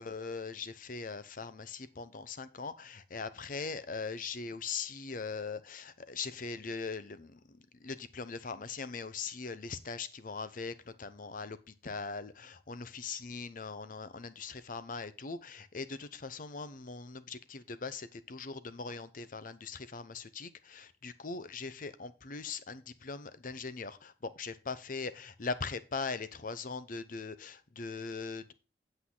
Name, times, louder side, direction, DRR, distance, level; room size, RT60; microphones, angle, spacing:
voice 1, 0.0-11.6 11.8-28.5, left 4 dB, 50° left, 0.8 m, -40 dB
8.5 x 7.8 x 3.8 m
head